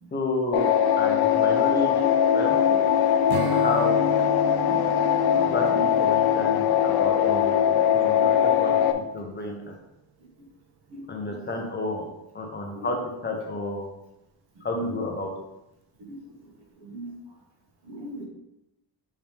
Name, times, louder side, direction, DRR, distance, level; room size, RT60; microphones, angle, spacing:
voice 1, 0.1-1.9 2.3-2.5 3.4-3.9 5.4-8.7 9.1-9.7 11.1-12.0 12.3-13.0 13.2-13.9 14.6-15.3, left 2 dB, 25° left, 1 dB, 1.0 m, -31 dB
sound 1, 0.5-8.9, left 9 dB, 60° left, 0.6 m, -21 dB
Strum, 3.3-8.7, right 9 dB, 55° right, 0.5 m, -38 dB
voice 2, 16.8-17.1 17.9-18.2, right 2 dB, 85° right, -1 dB, 2.0 m, -38 dB
7.2 x 4.4 x 3.6 m, 0.87 s
cardioid pair, 160°, 43 cm